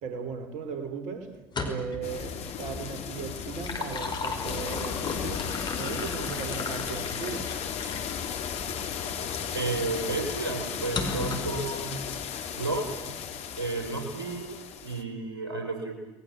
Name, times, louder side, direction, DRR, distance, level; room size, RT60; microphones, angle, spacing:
voice 1, 0.0-1.3 1.6-5.5 5.8-7.5, right 6 dB, 65° right, 9 dB, 4.5 m, -37 dB
sound 1, 1.4-2.1 3.3-8.2 8.8-8.9 10.9-11.6, left 3 dB, 35° left, 5.3 m, -35 dB
sound 2, 2.0-15.0, left 7 dB, 55° left, 2.7 m, -35 dB
voice 2, 8.9-9.2 9.5-12.0 12.5-13.2 13.6-14.5 14.8-15.9, right 3 dB, 90° right, 3 dB, 3.6 m, -32 dB
29.5 x 21.5 x 8.4 m, 0.97 s
hypercardioid pair, 60°, 13 cm